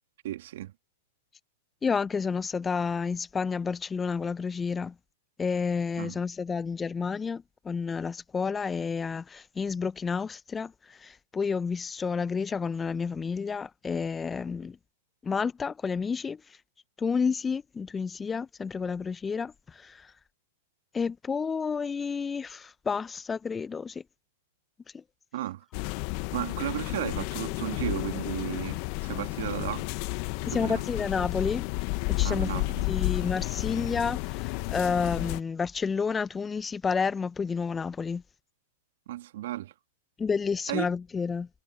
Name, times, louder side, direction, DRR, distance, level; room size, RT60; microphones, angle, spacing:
voice 1, 0.2-0.7 6.0-6.2 25.3-25.7 26.3-29.9 30.5-30.8 32.2-32.9 39.1-39.7 40.7-40.9, right 14 dB, 65° right, 2.3 m, -34 dB
voice 2, 1.8-4.9 5.4-14.8 15.2-16.4 17.0-20.1 20.9-24.0 24.9-25.0 30.4-31.7 32.2-38.2 40.2-41.5, left 5 dB, 15° left, 1.0 m, -30 dB
sound 1, 25.7-35.4, left 29 dB, 50° left, 1.5 m, -32 dB
hypercardioid pair, 100°, 0 cm